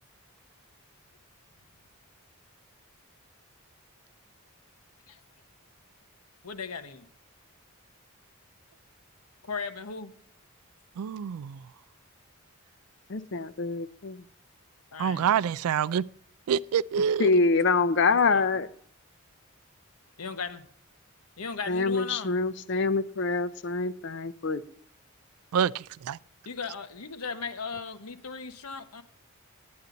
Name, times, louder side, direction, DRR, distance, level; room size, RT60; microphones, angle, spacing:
voice 1, 6.4-7.1 9.4-10.1 14.9-15.3 18.0-18.6 20.2-20.6 21.4-22.3 26.4-29.0, left 5 dB, 85° left, 1.1 m, -37 dB
voice 2, 11.0-11.6 15.0-16.0 16.5-17.3 25.5-26.2, right 8 dB, 80° right, 0.3 m, -26 dB
voice 3, 13.1-14.2 17.2-18.7 21.7-24.6, left 4 dB, 55° left, 0.5 m, -25 dB
10.5 x 9.5 x 3.9 m
head